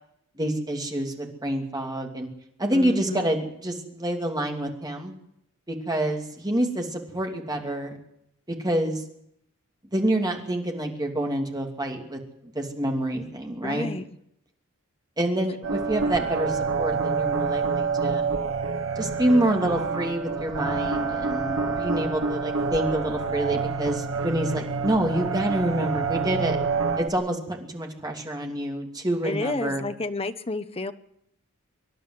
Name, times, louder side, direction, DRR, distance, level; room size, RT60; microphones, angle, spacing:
voice 1, 0.4-2.3 2.6-5.1 5.7-8.0 8.6-9.0 9.9-12.2 12.5-13.9 15.2-18.3 19.0-26.6 27.0-29.8, right 1 dB, 20° right, 2 dB, 2.9 m, -27 dB
voice 2, 2.7-3.3 13.6-14.0 29.2-30.9, left 2 dB, 25° left, 10 dB, 0.9 m, -30 dB
sound 1, 15.6-27.1, right 4 dB, 65° right, 1.9 m, -27 dB
25.0 x 11.0 x 9.7 m, 0.75 s
head